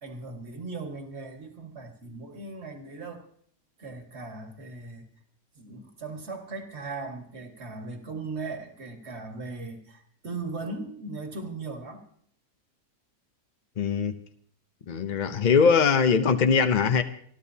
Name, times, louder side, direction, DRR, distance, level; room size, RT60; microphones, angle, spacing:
voice 1, 0.0-3.3 3.8-5.1 5.6-12.0, right 3 dB, 45° right, 2.0 m, -38 dB
voice 2, 13.8-14.1 14.9-17.0, left 6 dB, 55° left, 0.5 m, -21 dB
27.5 x 12.0 x 2.8 m
omnidirectional pair, 1.7 m